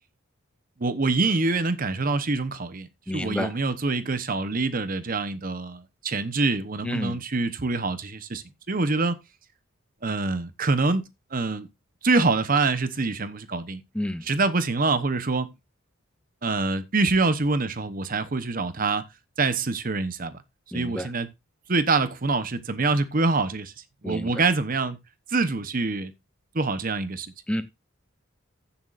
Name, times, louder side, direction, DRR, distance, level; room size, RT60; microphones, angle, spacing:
voice 1, 0.8-2.9 3.1-9.2 10.0-11.7 12.0-13.8 14.2-15.5 16.4-19.0 19.4-20.4 20.7-21.3 21.7-23.7 24.0-25.0 25.3-26.1 26.5-27.3, right 3 dB, 40° right, 0.9 m, -25 dB
voice 2, 3.1-3.5 6.8-7.2 13.9-14.2 20.7-21.1 24.0-24.3 27.5-27.6, left 1 dB, 5° left, 0.6 m, -29 dB
15.5 x 7.2 x 2.5 m
head